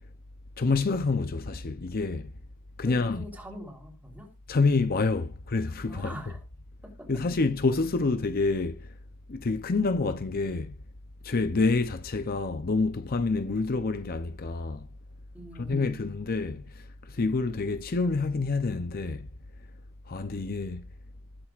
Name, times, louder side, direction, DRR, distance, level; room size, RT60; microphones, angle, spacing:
voice 1, 0.6-2.3 2.8-3.3 4.5-6.1 7.1-9.0 9.3-10.8 11.2-14.9 15.6-19.3 20.1-20.9, left 3 dB, 40° left, 0.6 m, -27 dB
voice 2, 2.8-4.3 5.9-6.4 6.8-7.1 15.3-16.0, equal, 5° right, 3.5 m, -42 dB
20.5 x 7.6 x 2.4 m
head